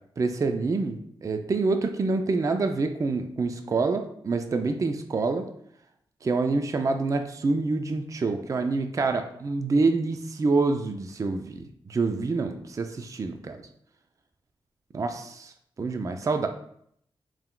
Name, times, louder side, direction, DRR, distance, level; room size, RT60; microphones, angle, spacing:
voice 1, 0.2-5.5 6.2-13.6 14.9-15.5 15.8-16.5, right 3 dB, 35° right, 6 dB, 0.4 m, -27 dB
4.4 x 3.7 x 2.2 m, 0.68 s
cardioid pair, 80°, 9 cm